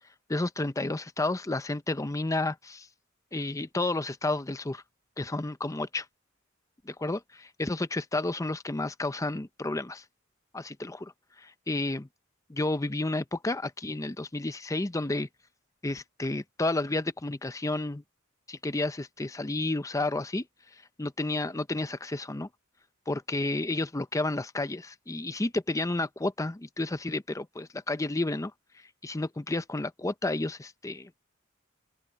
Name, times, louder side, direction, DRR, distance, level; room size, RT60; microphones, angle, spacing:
voice 1, 0.3-2.9 3.3-4.8 5.2-6.1 6.9-10.0 10.5-11.1 11.4-12.1 12.5-15.3 15.8-18.0 18.5-20.5 21.0-22.5 23.1-28.5 29.0-31.1, left 2 dB, 15° left, 0.6 m, -31 dB
open air
head